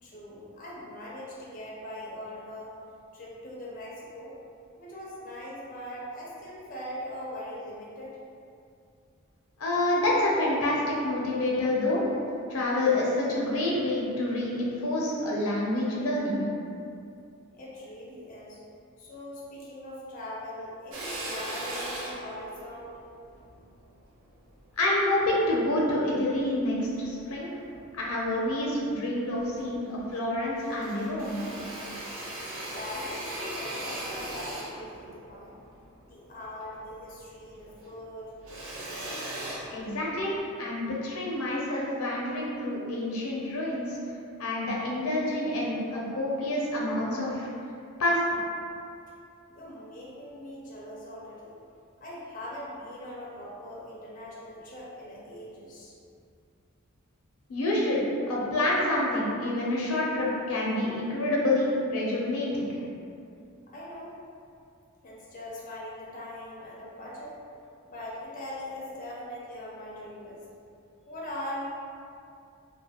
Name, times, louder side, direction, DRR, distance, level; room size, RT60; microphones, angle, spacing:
voice 1, 0.0-2.7 3.1-4.4 4.8-8.2 17.5-18.6 19.0-23.0 32.7-35.5 36.1-38.3 49.5-51.5 52.0-55.9 63.7-64.1 65.0-67.4 67.9-70.4 71.1-71.7, left 1 dB, 40° left, -6 dB, 0.4 m, -41 dB
voice 2, 9.6-12.0 12.5-16.4 24.8-27.5 27.9-31.4 39.7-40.3 40.6-44.0 44.4-47.5 48.0-48.2 57.5-58.0 58.3-62.7, left 1 dB, 90° left, -4 dB, 0.6 m, -27 dB
Drill, 20.9-25.4 26.0-27.2 27.6-28.6 28.9-29.0 29.3-30.3 30.5-37.2 37.5-40.4, right 1 dB, 70° right, 0.5 m, -39 dB
2.4 x 2.2 x 2.8 m, 2.5 s
head